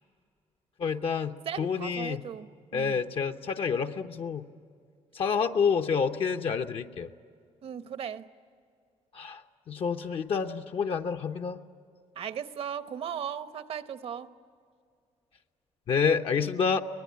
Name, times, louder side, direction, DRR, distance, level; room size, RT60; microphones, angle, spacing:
voice 1, 0.8-2.2 2.7-4.4 5.1-7.1 9.1-11.6 15.9-16.8, left 6 dB, 55° left, 5 dB, 0.8 m, -28 dB
voice 2, 1.4-3.0 7.6-8.3 12.1-14.3, right 8 dB, 60° right, 12 dB, 0.9 m, -37 dB
24.5 x 19.5 x 9.6 m, 2.3 s
cardioid pair, 120°, 11 cm